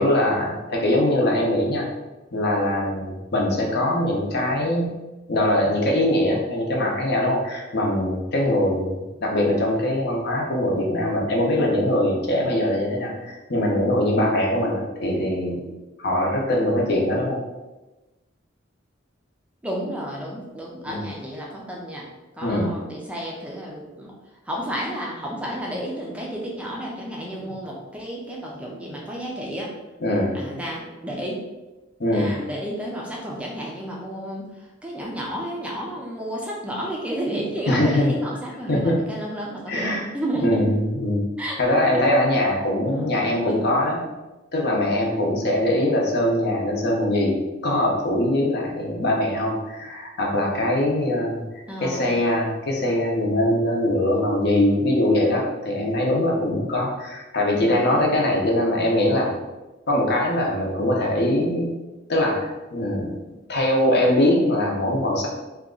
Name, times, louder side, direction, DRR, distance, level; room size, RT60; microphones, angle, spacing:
voice 1, 0.0-1.9 2.3-4.9 5.3-15.6 16.0-17.4 20.8-21.0 22.4-22.7 27.4-27.5 30.0-30.3 32.0-32.3 37.7-38.1 38.7-39.0 39.7-40.1 40.4-41.3 41.6-44.0 44.5-47.4 47.6-51.4 51.8-59.3 59.9-61.7 62.1-63.1 63.5-65.3, left 1 dB, 55° left, -1 dB, 0.7 m, -22 dB
voice 2, 19.6-22.1 22.4-24.1 24.5-29.7 30.3-31.4 32.1-34.5 34.8-40.7 41.4-41.6 42.8-43.1 43.5-43.6 51.7-52.2 57.5-58.1, equal, 5° right, -3 dB, 0.4 m, -31 dB
2.8 x 2.3 x 3.7 m, 1.1 s
head